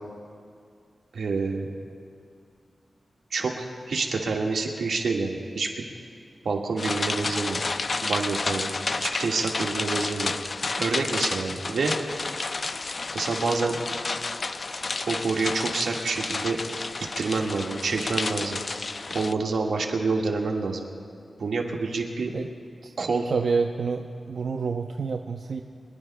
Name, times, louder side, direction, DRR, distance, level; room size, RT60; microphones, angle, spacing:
voice 1, 1.1-1.7 3.3-5.9 6.4-7.6 8.0-8.7 9.0-10.3 10.8-11.9 13.1-13.8 15.1-16.6 17.2-18.6 19.1-20.9 21.4-22.4 23.0-23.3, right 4 dB, 90° right, 0 dB, 1.6 m, -27 dB
sound 1, 6.8-19.3, left 3 dB, 35° left, 0.3 m, -31 dB
voice 2, 23.3-25.6, right 4 dB, 65° right, 3 dB, 0.5 m, -28 dB
24.0 x 21.0 x 2.2 m, 2.3 s
wide cardioid pair, 180°, 0 cm